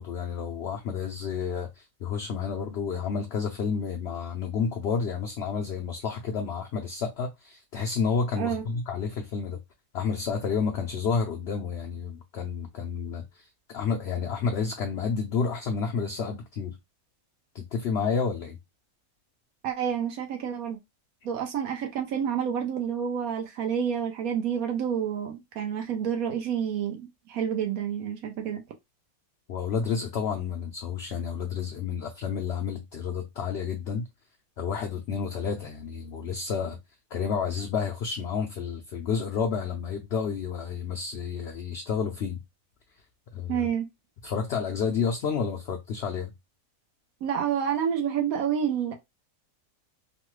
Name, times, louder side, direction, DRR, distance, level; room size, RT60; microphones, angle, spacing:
voice 1, 0.0-9.6 9.9-13.5 13.7-16.8 17.5-18.6 29.5-34.1 34.6-36.8 37.1-42.4 43.3-43.7 44.2-46.3, left 6 dB, 65° left, 0.6 m, -30 dB
voice 2, 19.6-20.8 21.2-28.6 43.5-43.9 47.2-48.9, right 8 dB, 75° right, 1.1 m, -29 dB
3.1 x 2.1 x 3.0 m
omnidirectional pair, 1.5 m